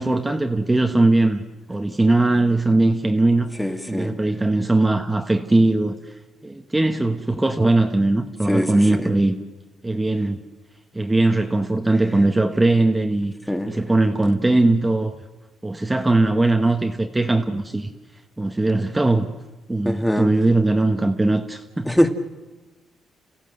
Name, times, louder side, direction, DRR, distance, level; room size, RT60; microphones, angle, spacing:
voice 1, 0.0-1.4 1.7-3.5 3.9-6.0 6.4-9.4 9.8-10.4 10.9-13.3 13.7-15.2 15.6-17.9 18.4-19.3 19.7-21.9, right 2 dB, 15° right, 5 dB, 1.3 m, -20 dB
voice 2, 3.6-4.2 8.5-9.1 13.5-13.8 19.8-20.3 21.9-22.1, equal, 5° left, 7 dB, 2.0 m, -22 dB
30.0 x 15.5 x 7.9 m, 1.2 s
cardioid pair, 90°, 0 cm